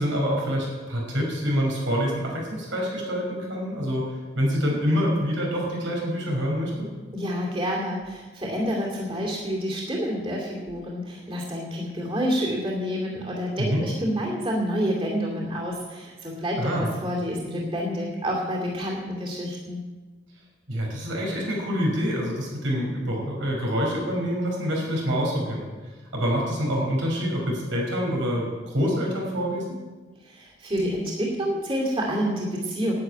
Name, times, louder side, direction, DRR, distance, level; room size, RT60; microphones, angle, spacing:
voice 1, 0.0-6.9 13.6-13.9 16.5-16.9 20.7-29.8, equal, 85° right, -2 dB, 5.4 m, -26 dB
voice 2, 7.1-19.8 30.2-32.9, equal, 30° right, -3 dB, 2.7 m, -28 dB
10.5 x 9.0 x 9.5 m, 1.3 s
head